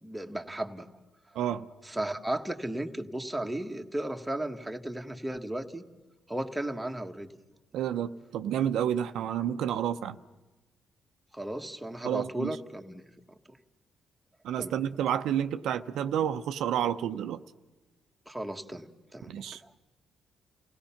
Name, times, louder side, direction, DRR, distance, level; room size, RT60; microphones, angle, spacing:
voice 1, 0.0-0.9 1.8-5.8 6.3-7.3 11.3-13.0 13.5-13.6 14.6-14.7 18.3-19.7, right 1 dB, 5° right, 3 dB, 1.5 m, -35 dB
voice 2, 1.3-1.7 7.7-10.2 12.0-12.6 14.4-17.4 19.3-19.6, right 10 dB, 80° right, 8 dB, 0.7 m, -30 dB
30.0 x 17.0 x 5.8 m, 1.1 s
cardioid pair, 90°, 0 cm